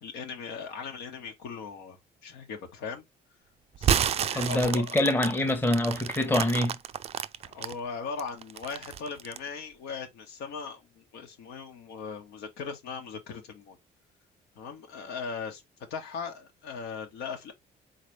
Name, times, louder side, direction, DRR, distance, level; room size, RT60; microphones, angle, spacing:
voice 1, 0.0-3.0 3.8-5.0 7.4-13.8 14.6-15.6 15.9-17.5, left 5 dB, 85° left, 1.3 m, -39 dB
sound 1, 3.8-7.7 8.2-9.5, right 9 dB, 40° right, 0.4 m, -30 dB
voice 2, 4.3-6.8, left 1 dB, 10° left, 0.9 m, -25 dB
4.1 x 3.3 x 3.1 m
cardioid pair, 110°, 17 cm